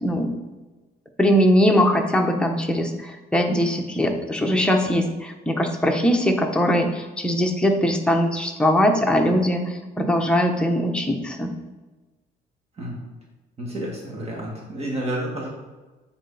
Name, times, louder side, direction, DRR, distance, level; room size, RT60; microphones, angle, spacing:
voice 1, 0.0-0.3 1.2-11.5, equal, 5° left, 2 dB, 1.0 m, -21 dB
voice 2, 13.6-15.5, right 1 dB, 35° right, -2 dB, 2.1 m, -30 dB
8.9 x 4.1 x 4.1 m, 1.2 s
cardioid pair, 110°, 17 cm